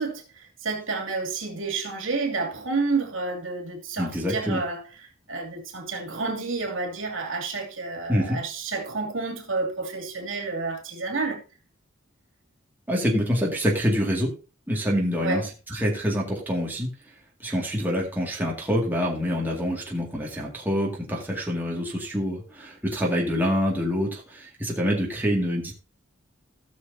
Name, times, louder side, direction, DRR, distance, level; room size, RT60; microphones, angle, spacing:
voice 1, 0.0-4.8 5.3-11.4 15.2-15.4, right 3 dB, 80° right, 2.8 m, -30 dB
voice 2, 4.0-4.6 8.1-8.4 12.9-14.3 14.7-15.4 15.7-16.9 17.4-25.7, equal, 10° right, 2.2 m, -26 dB
17.0 x 6.4 x 2.8 m
head